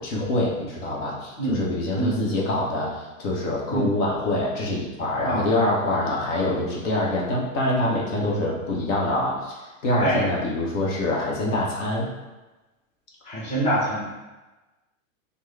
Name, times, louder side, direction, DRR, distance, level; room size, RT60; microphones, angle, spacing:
voice 1, 0.0-12.1, left 1 dB, 60° left, -3 dB, 1.0 m, -25 dB
voice 2, 1.4-1.7 1.9-2.2 3.7-3.9 5.2-5.5 10.0-10.3 13.2-14.1, right 1 dB, 15° left, -8 dB, 1.0 m, -25 dB
3.4 x 2.2 x 3.2 m, 1.1 s
hypercardioid pair, 130°, 41 cm